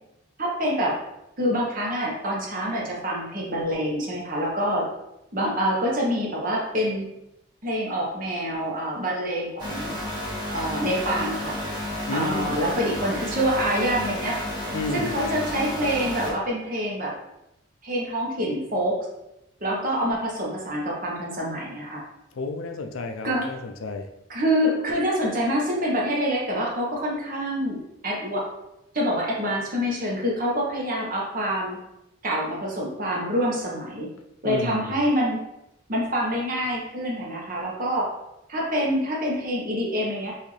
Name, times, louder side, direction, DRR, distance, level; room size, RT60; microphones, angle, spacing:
voice 1, 0.4-1.0 1.4-4.8 5.3-7.1 7.6-9.9 10.5-11.6 12.1-14.4 14.9-17.1 17.8-19.0 19.6-22.0 23.2-23.5 24.3-28.4 28.9-31.8 32.2-34.1 34.4-35.4 35.9-38.1 38.5-40.3, equal, 40° right, -3 dB, 1.1 m, -26 dB
sound 1, 9.6-16.3, left 1 dB, 20° right, 1.5 m, -31 dB
voice 2, 12.1-12.6 14.7-15.1 22.3-24.1 34.4-35.0, left 2 dB, 75° left, 5 dB, 0.5 m, -31 dB
5.6 x 2.8 x 3.2 m, 0.87 s
head